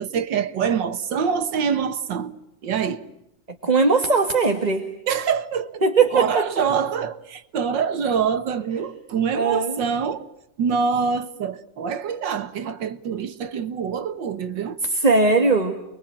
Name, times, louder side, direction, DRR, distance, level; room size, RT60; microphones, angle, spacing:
voice 1, 0.0-2.3 2.6-3.0 5.1-5.8 6.1-10.3 10.6-14.8, right 6 dB, 85° right, 2.1 m, -25 dB
voice 2, 3.6-4.9 5.8-6.7 9.3-9.8 14.8-15.8, right 4 dB, 25° right, 2.0 m, -19 dB
29.5 x 22.5 x 8.8 m
omnidirectional pair, 1.9 m